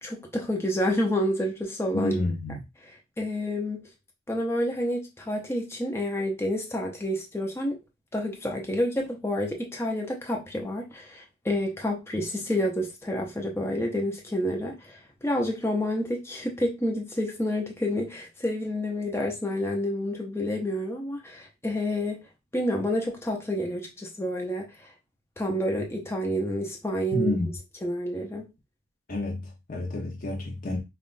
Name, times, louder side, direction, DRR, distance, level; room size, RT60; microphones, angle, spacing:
voice 1, 0.0-2.2 3.2-3.8 4.3-7.8 8.1-22.2 22.5-24.7 25.4-27.3 27.8-28.5, equal, 10° left, 0.7 m, -29 dB
voice 2, 1.9-2.6 27.1-27.5 29.1-30.8, left 2 dB, 45° left, 0.9 m, -29 dB
5.6 x 2.5 x 2.5 m
head